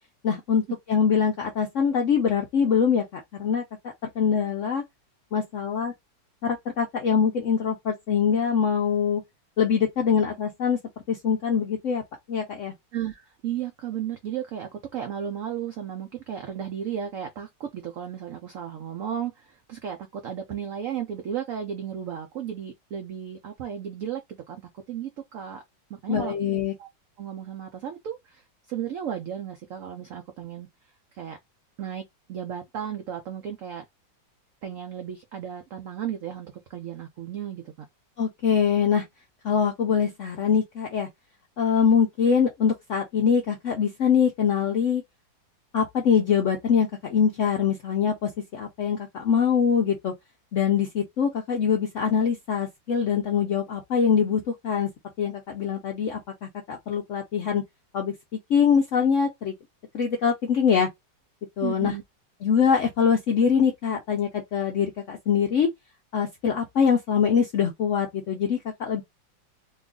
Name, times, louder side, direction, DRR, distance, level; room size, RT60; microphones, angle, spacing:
voice 1, 0.2-0.6 0.9-3.0 3.3-3.6 4.2-4.8 5.3-5.9 6.4-9.2 9.6-10.8 11.1-12.0 12.3-12.7 26.1-26.7 38.2-39.1 39.4-41.1 41.6-45.0 45.7-50.1 50.5-54.9 55.2-57.6 57.9-58.1 58.5-59.5 59.9-60.9 61.6-61.9 62.4-65.7 66.1-69.0, left 7 dB, 75° left, 0.7 m, -23 dB
voice 2, 12.9-25.6 25.9-26.3 26.8-26.9 27.2-30.7 31.1-31.4 31.8-33.8 34.6-37.9 61.6-62.0, right 9 dB, 85° right, 0.7 m, -34 dB
3.0 x 2.3 x 3.5 m
omnidirectional pair, 2.0 m